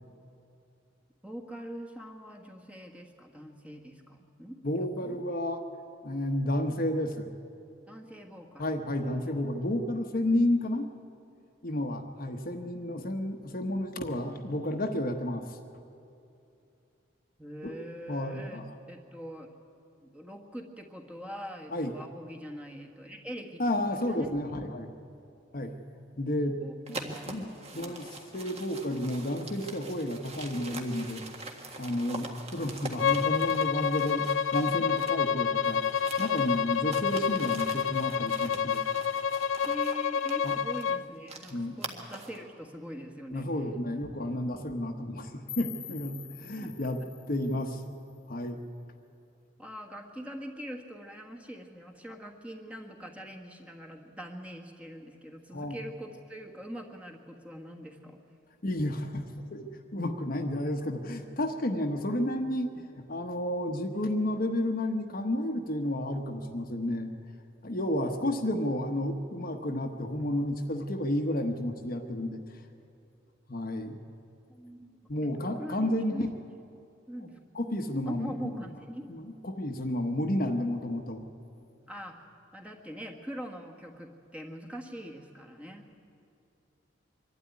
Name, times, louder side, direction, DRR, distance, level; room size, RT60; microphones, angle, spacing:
voice 1, 1.2-5.2 7.9-8.7 9.0-9.4 17.4-18.6 18.9-19.5 20.0-23.6 23.9-24.3 26.4-27.3 27.7-28.0 39.6-43.5 46.1-46.3 46.6-47.1 49.6-58.2 68.0-68.2 74.5-76.3 77.1-77.4 78.0-79.2 81.9-85.9, equal, 5° right, 1 dB, 1.5 m, -43 dB
voice 2, 4.6-5.6 6.0-7.3 8.6-10.9 11.6-15.6 17.6-17.7 18.1-18.6 21.7-21.9 23.6-24.9 25.5-25.7 26.2-26.6 26.9-31.2 31.8-35.8 36.2-38.8 40.4-40.6 41.5-41.8 43.3-47.0 47.3-47.8 48.3-48.6 55.5-55.8 58.6-67.1 67.6-72.4 73.5-74.0 75.1-76.3 77.5-78.3 79.1-81.2, left 1 dB, 45° left, 4 dB, 1.1 m, -31 dB
sound 1, 26.9-35.3 35.6-42.4, right 3 dB, 30° right, 1.7 m, -44 dB
Bowed string instrument, 33.0-41.0, left 7 dB, 75° left, 0.6 m, -28 dB
sound 2, 45.5-48.5, left 11 dB, 25° left, 1.0 m, -46 dB
24.0 x 12.5 x 9.5 m, 2.7 s
head